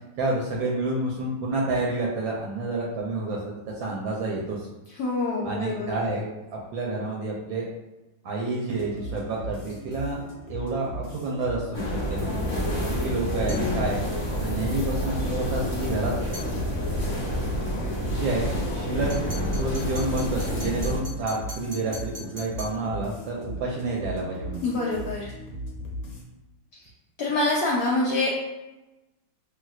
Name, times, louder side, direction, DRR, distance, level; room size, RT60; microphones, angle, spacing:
voice 1, 0.2-4.7 5.4-6.2 6.5-7.7 8.2-12.3 13.0-14.0 14.4-16.1 18.1-19.1 19.5-24.6, right 2 dB, 75° right, -3 dB, 1.2 m, -29 dB
voice 2, 5.0-5.9 24.6-25.3 27.2-28.3, left 2 dB, 85° left, -6 dB, 0.8 m, -25 dB
sound 1, 8.7-26.2, right 1 dB, 65° left, 1.1 m, -38 dB
sound 2, 11.7-21.0, equal, 35° left, 0.6 m, -28 dB
sound 3, 13.5-13.7 16.3-16.5 19.1-22.8, left 1 dB, 20° right, 0.5 m, -41 dB
3.3 x 2.8 x 2.3 m, 1.0 s
omnidirectional pair, 2.3 m